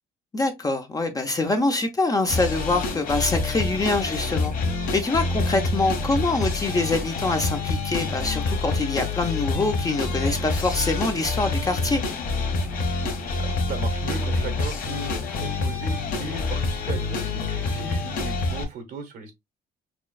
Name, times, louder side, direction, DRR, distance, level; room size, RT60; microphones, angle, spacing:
voice 1, 0.3-4.5 4.9-12.0, left 2 dB, 20° left, 0.7 m, -25 dB
sound 1, 2.3-18.6, left 3 dB, 55° left, 1.3 m, -27 dB
voice 2, 13.4-19.3, right 5 dB, 65° right, 1.1 m, -37 dB
6.0 x 2.4 x 2.3 m
cardioid pair, 110°, 17 cm